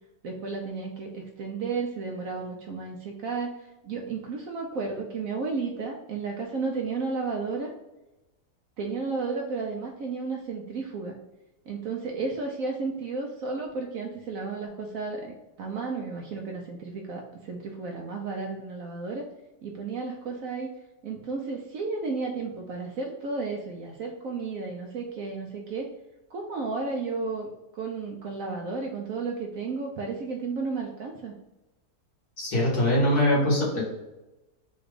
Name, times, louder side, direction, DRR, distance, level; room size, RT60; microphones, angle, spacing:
voice 1, 0.2-7.7 8.8-11.1 11.7-19.3 19.6-20.7 21.0-25.9 26.3-31.3, right 4 dB, 65° right, 1 dB, 0.9 m, -33 dB
voice 2, 32.4-33.8, left 1 dB, 65° left, -5 dB, 2.1 m, -22 dB
4.2 x 2.5 x 4.8 m, 1.0 s
omnidirectional pair, 1.8 m